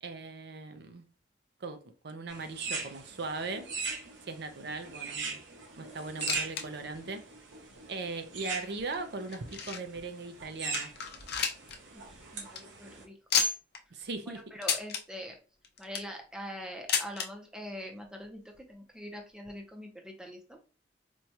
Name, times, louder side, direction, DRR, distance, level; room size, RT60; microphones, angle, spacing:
voice 1, 0.0-1.0 1.6-3.7 4.3-5.4 5.8-7.2 7.9-10.9 13.9-14.4, right 3 dB, 65° right, 0.5 m, -39 dB
sound 1, 2.3-13.0, right 4 dB, 90° right, 1.0 m, -41 dB
sound 2, 6.0-6.6 6.9-7.0 7.7-7.8 8.5-10.0 10.4-10.5 10.7-11.8 12.1-12.2 12.4-12.6 13.3-13.8 14.6-15.0 15.6-16.2 16.9-17.3 18.2-18.3 18.5-18.6 19.4-19.5, left 6 dB, 60° left, 0.6 m, -31 dB
voice 2, 11.9-13.4 14.2-15.4 15.8-20.6, equal, 5° right, 0.6 m, -44 dB
4.4 x 2.3 x 2.8 m
head